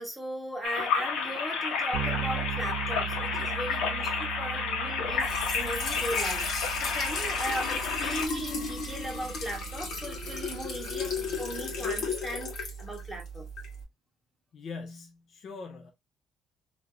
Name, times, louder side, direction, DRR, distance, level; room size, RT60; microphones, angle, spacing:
voice 1, 0.0-13.5, equal, ahead, 1.2 m, -37 dB
sound 1, 0.6-8.3, left 5 dB, 85° left, 0.9 m, -31 dB
Bass guitar, 1.9-11.6, right 12 dB, 75° right, 0.8 m, -39 dB
Trickle dribble / Fill (with liquid), 5.1-13.8, left 3 dB, 60° left, 1.3 m, -35 dB
voice 2, 14.5-15.9, left 4 dB, 45° left, 0.5 m, -42 dB
3.3 x 2.5 x 2.7 m
cardioid pair, 130°, 0 cm